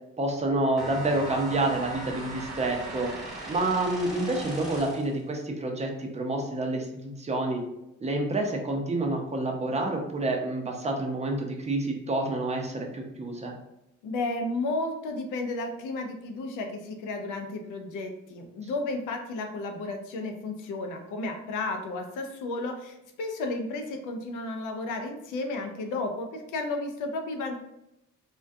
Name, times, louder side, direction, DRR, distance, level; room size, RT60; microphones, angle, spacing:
voice 1, 0.2-3.1 3.5-7.6 8.0-13.6, right 2 dB, 25° right, 2 dB, 0.5 m, -28 dB
sound 1, 0.8-5.2, right 2 dB, ahead, 0.8 m, -39 dB
voice 2, 14.0-27.6, left 2 dB, 85° left, 4 dB, 0.5 m, -33 dB
2.3 x 2.2 x 2.5 m, 0.86 s
cardioid pair, 90°, 30 cm